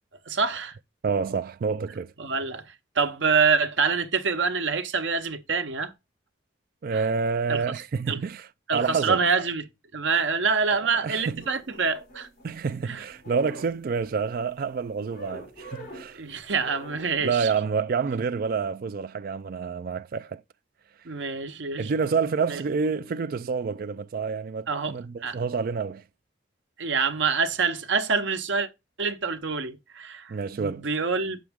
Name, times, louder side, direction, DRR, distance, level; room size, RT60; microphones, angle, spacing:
voice 1, 0.3-0.7 2.2-2.6 3.0-5.9 6.9-7.0 7.5-7.6 8.1-8.2 8.7-9.7 9.9-12.3 12.9-13.0 16.2-17.5 21.0-21.9 22.5-22.6 24.7-24.9 25.2-25.4 26.8-28.7 29.0-31.4, right 5 dB, 80° right, 0.9 m, -26 dB
voice 2, 1.0-2.1 6.8-9.2 10.8-11.4 12.4-16.2 17.2-20.4 21.8-26.0 30.3-30.9, right 5 dB, 50° right, 0.4 m, -28 dB
sound 1, 11.2-12.8 13.1-14.4 15.1-16.2 16.5-17.2, right 1 dB, 45° left, 4.6 m, -44 dB
7.0 x 6.1 x 3.5 m
head